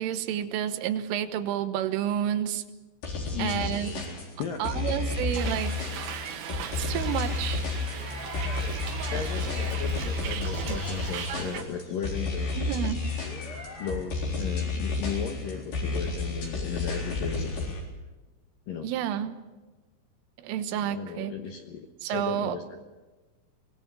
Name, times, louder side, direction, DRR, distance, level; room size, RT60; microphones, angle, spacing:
voice 1, 0.0-2.6 3.4-4.0 4.6-5.8 6.8-7.6 9.1-9.2 12.6-13.0 18.8-19.4 20.4-21.4 22.0-22.6, right 10 dB, 90° right, 10 dB, 3.7 m, -30 dB
sound 1, 3.0-17.8, left 3 dB, 45° left, 5.4 m, -31 dB
voice 2, 3.3-3.8 4.4-4.9 9.1-12.9 13.8-17.6 18.7-18.9 20.9-22.8, left 7 dB, 70° left, 5 dB, 2.2 m, -36 dB
Hiss, 5.3-11.6, right 7 dB, 75° right, 4.1 m, -37 dB
sound 2, 7.8-10.7 11.3-14.2, left 1 dB, 20° left, 3.4 m, -45 dB
24.0 x 20.0 x 7.0 m, 1.2 s
omnidirectional pair, 5.6 m